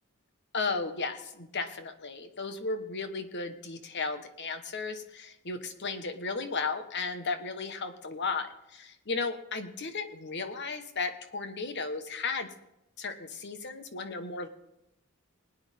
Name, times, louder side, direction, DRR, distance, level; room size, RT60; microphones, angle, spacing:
voice 1, 0.5-12.5 13.0-14.5, left 4 dB, 55° left, 8 dB, 1.3 m, -35 dB
20.0 x 9.8 x 3.6 m, 0.85 s
head